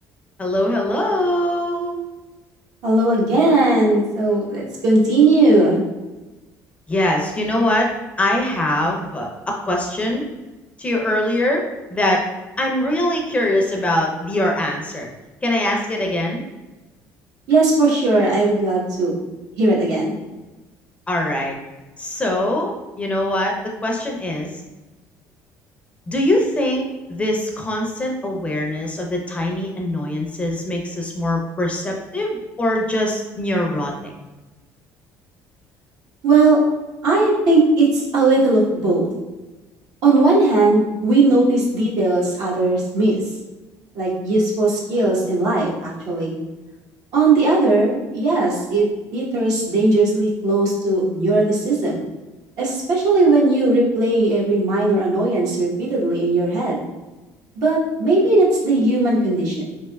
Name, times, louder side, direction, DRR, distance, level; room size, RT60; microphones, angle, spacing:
voice 1, 0.4-2.0 6.9-7.9 8.2-10.2 10.8-11.6 11.9-12.2 12.6-15.1 15.4-16.4 21.1-21.6 22.0-24.5 26.1-34.1, left 1 dB, 20° left, 0 dB, 0.5 m, -22 dB
voice 2, 2.8-5.8 17.5-19.1 19.6-20.1 36.2-36.6 37.0-39.1 40.0-43.2 43.9-46.3 47.1-48.8 49.1-52.0 52.6-56.8 57.6-59.6, right 2 dB, 65° right, -5 dB, 1.0 m, -18 dB
3.3 x 2.6 x 2.2 m, 1.1 s
cardioid pair, 110°, 7 cm